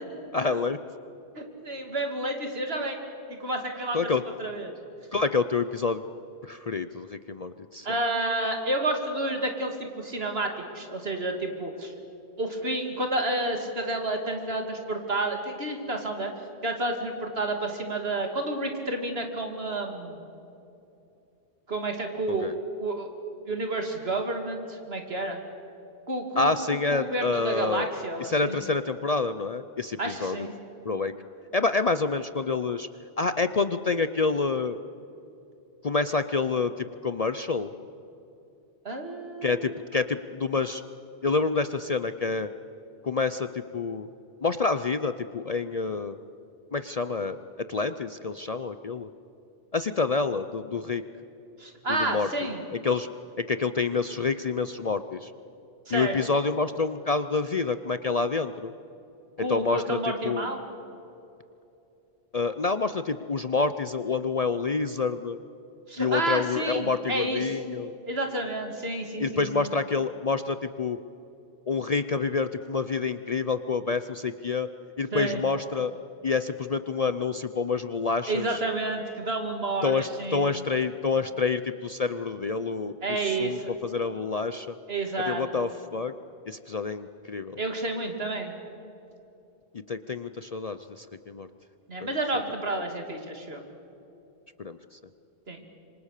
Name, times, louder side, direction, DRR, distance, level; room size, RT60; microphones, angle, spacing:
voice 1, 0.3-0.8 3.9-4.2 5.1-6.0 6.4-7.9 22.3-22.5 26.4-27.9 28.2-30.5 30.9-31.1 31.5-32.9 33.2-34.8 35.8-37.7 39.4-40.8 41.2-42.5 43.0-43.5 43.7-44.1 44.4-46.2 46.7-47.4 47.7-49.1 49.7-51.0 51.9-52.3 52.8-53.1 53.4-55.3 55.9-58.7 59.5-60.0 60.2-60.5 62.3-65.4 66.0-67.9 69.2-71.0 71.7-74.7 75.0-75.9 76.2-78.6 79.8-84.8 85.3-86.1 86.5-87.6 89.9-91.5 94.6-94.8, left 4 dB, 40° left, 11 dB, 0.6 m, -28 dB
voice 2, 1.3-3.0 3.3-4.1 4.4-4.7 7.8-11.9 12.4-16.3 16.6-20.2 21.7-22.5 22.8-23.1 23.5-25.4 26.1-28.5 30.0-30.5 38.8-39.8 51.6-52.6 55.9-56.2 59.4-60.6 65.9-67.5 68.1-69.7 75.1-75.4 78.3-80.6 83.0-83.7 84.9-85.6 87.6-88.5 91.9-93.6 95.5-95.6, right 2 dB, 65° right, 4 dB, 2.9 m, -30 dB
27.0 x 25.0 x 6.7 m, 2.8 s
omnidirectional pair, 1.1 m